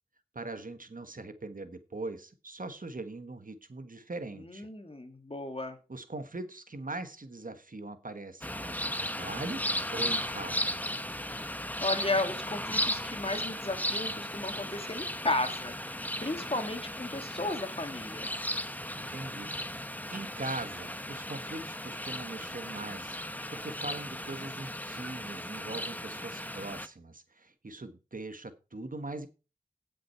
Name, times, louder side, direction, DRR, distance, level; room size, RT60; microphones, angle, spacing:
voice 1, 0.3-4.7 5.9-10.8 18.4-18.5 19.0-29.3, right 2 dB, 60° right, 10 dB, 1.4 m, -41 dB
voice 2, 4.4-5.8 11.8-18.3, left 2 dB, 40° left, 6 dB, 2.3 m, -34 dB
sound 1, 8.4-26.9, left 1 dB, 10° left, 1.0 m, -36 dB
16.5 x 6.3 x 4.4 m, 0.32 s
wide cardioid pair, 45°, 15 cm